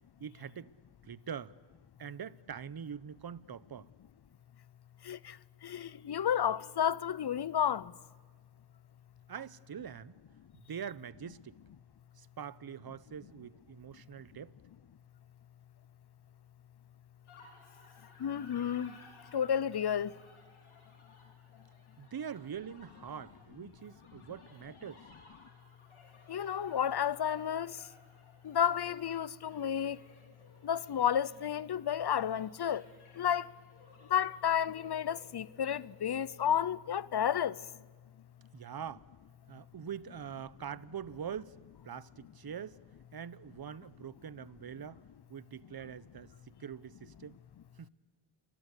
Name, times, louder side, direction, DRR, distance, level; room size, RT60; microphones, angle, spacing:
voice 1, 0.2-0.7 1.0-1.5 2.0-3.9 9.3-10.2 10.5-11.6 12.2-14.5 22.0-25.1 38.5-39.1 39.5-41.6 41.8-42.8 43.1-45.0 45.3-47.4 47.8-47.9, right 8 dB, 50° right, 0.9 m, -44 dB
voice 2, 5.6-7.9 18.2-18.9 19.3-20.1 26.3-27.8 28.4-30.0 30.6-32.8 33.2-33.5 34.1-37.6, left 9 dB, 55° left, 0.8 m, -31 dB
sound 1, 17.3-36.7, left 3 dB, 90° left, 5.1 m, -59 dB
28.0 x 22.5 x 8.4 m
cardioid pair, 50°, 48 cm